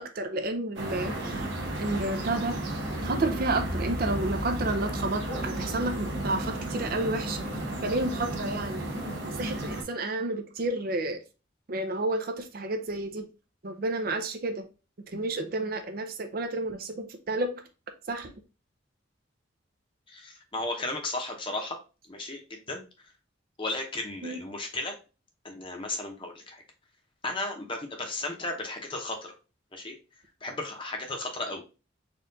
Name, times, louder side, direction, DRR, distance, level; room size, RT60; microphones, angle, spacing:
voice 1, 0.0-1.5 1.8-2.6 3.0-7.4 7.8-8.8 9.4-11.2 11.7-13.3 13.6-14.7 15.1-17.6 18.1-18.3 24.2-24.4, right 2 dB, 50° right, 0.5 m, -31 dB
sound 1, 0.7-9.8, right 1 dB, 75° right, 1.1 m, -33 dB
voice 2, 20.1-21.8 22.1-22.8 23.6-24.9 25.4-26.6 27.2-29.3 29.7-29.9 30.4-31.6, left 2 dB, 25° left, 0.8 m, -34 dB
4.3 x 2.5 x 3.8 m
head